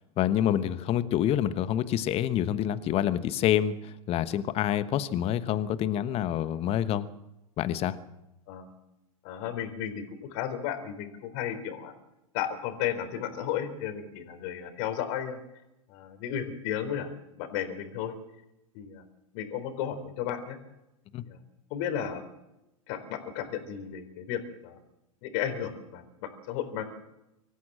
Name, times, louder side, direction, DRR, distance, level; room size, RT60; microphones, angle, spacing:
voice 1, 0.2-7.1 7.6-8.0 21.1-21.2, left 11 dB, 35° left, 13 dB, 1.2 m, -27 dB
voice 2, 9.2-11.9 12.3-15.4 15.9-18.1 18.7-19.0 19.3-20.6 21.2-21.4 21.7-22.2 22.9-24.8 25.2-26.8, left 9 dB, 50° left, 8 dB, 4.1 m, -34 dB
25.0 x 14.5 x 7.7 m, 0.92 s
figure-of-eight pair, 100°, 18 cm